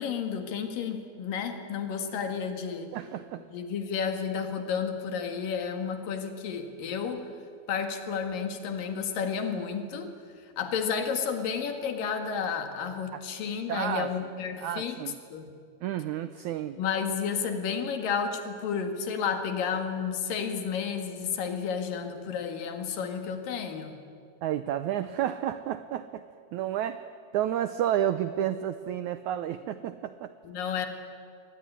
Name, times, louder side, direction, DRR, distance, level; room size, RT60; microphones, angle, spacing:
voice 1, 0.0-2.9 3.5-7.3 7.7-10.1 10.6-15.0 15.3-15.5 16.8-24.0 30.4-30.9, left 6 dB, 65° left, 6 dB, 3.4 m, -31 dB
voice 2, 2.9-3.4 13.1-13.2 13.7-14.1 14.6-15.2 15.8-16.8 24.4-26.2 26.5-27.0 27.3-30.3, right 11 dB, 85° right, 12 dB, 1.7 m, -31 dB
23.5 x 19.0 x 9.9 m, 2.3 s
omnidirectional pair, 4.4 m